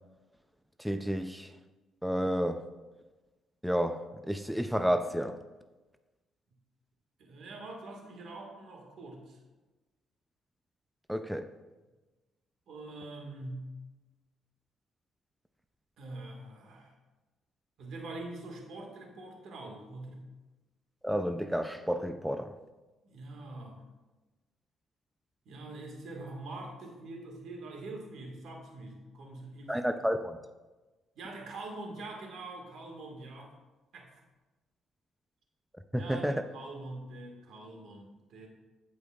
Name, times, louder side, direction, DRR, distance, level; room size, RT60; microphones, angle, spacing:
voice 1, 0.8-1.5 2.0-2.6 3.6-5.4 11.1-11.5 21.0-22.5 29.7-30.4 35.9-36.4, equal, ahead, 8 dB, 0.4 m, -31 dB
voice 2, 7.2-9.4 12.7-13.7 16.0-17.0 17.8-20.2 23.0-23.8 25.4-29.8 31.1-33.5 33.9-34.1 35.9-38.5, right 2 dB, 70° right, 1 dB, 1.7 m, -44 dB
15.5 x 5.2 x 2.4 m, 1.2 s
cardioid pair, 90°, 0 cm